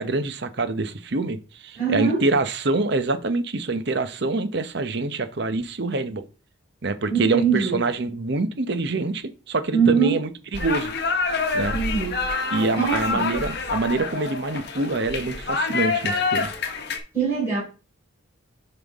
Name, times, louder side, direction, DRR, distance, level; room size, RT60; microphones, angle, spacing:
voice 1, 0.0-6.2 6.8-10.9 11.5-11.8 12.5-16.5, right 3 dB, 55° right, 0.8 m, -25 dB
voice 2, 1.8-2.2 7.1-7.8 9.7-10.2 11.7-12.2 12.7-13.3 17.1-17.6, right 6 dB, 20° right, 4.4 m, -22 dB
sound 1, 10.5-17.0, left 4 dB, 55° left, 1.2 m, -27 dB
7.4 x 5.9 x 3.5 m
head